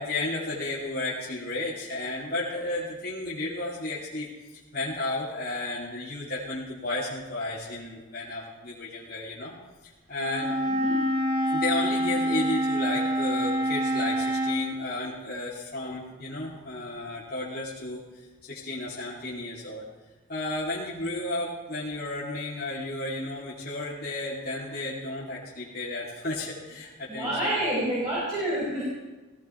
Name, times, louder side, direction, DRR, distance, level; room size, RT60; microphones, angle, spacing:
voice 1, 0.0-4.3 4.7-9.5 10.1-10.5 11.5-19.8 20.3-27.7, left 2 dB, 45° left, -7 dB, 3.1 m, -33 dB
Wind instrument woodwind instrument, 10.2-14.6, equal, 40° right, 2.8 m, -26 dB
voice 2, 10.7-11.1 27.1-28.8, right 1 dB, 20° right, -7 dB, 5.5 m, -28 dB
17.5 x 16.5 x 4.6 m, 1.2 s
head